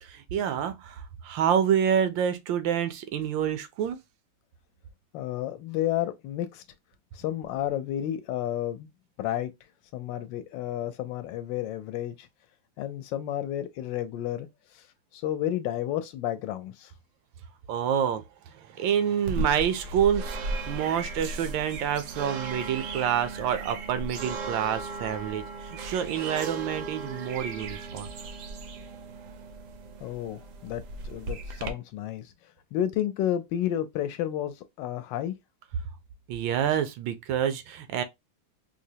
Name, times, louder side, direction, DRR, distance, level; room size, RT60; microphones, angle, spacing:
voice 1, 0.0-4.0 17.7-28.1 36.3-38.0, right 9 dB, 85° right, 1.4 m, -28 dB
voice 2, 5.1-6.6 7.1-8.9 9.2-9.5 9.9-12.3 12.8-14.9 15.1-16.9 30.0-32.3 32.7-35.4, left 12 dB, 80° left, 1.2 m, -31 dB
sound 1, 19.3-31.7, right 2 dB, 70° right, 0.8 m, -36 dB
4.9 x 2.0 x 2.7 m
omnidirectional pair, 2.0 m